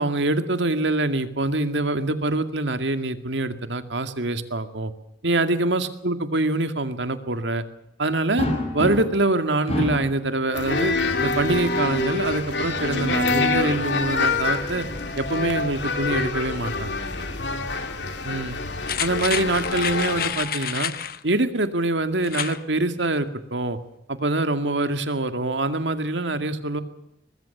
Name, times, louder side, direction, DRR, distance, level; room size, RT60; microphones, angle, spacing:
voice 1, 0.0-4.9 5.2-7.6 8.0-8.5 8.7-10.9 11.2-14.9 15.2-16.9 18.2-18.6 19.0-20.9 21.2-23.8 24.1-26.8, right 2 dB, 80° right, 9 dB, 2.2 m, -24 dB
sound 1, 8.4-9.3 9.7-10.2 11.4-12.1 14.8-15.8 17.2-17.4 17.8-17.9 19.4-20.7, left 1 dB, 35° left, 6.0 m, -30 dB
sound 2, 10.5-20.3, left 3 dB, 75° left, 3.2 m, -26 dB
sound 3, 18.8-21.2 22.2-22.6 23.0-23.1, left 9 dB, 55° left, 1.1 m, -29 dB
23.5 x 21.0 x 6.8 m, 0.80 s
head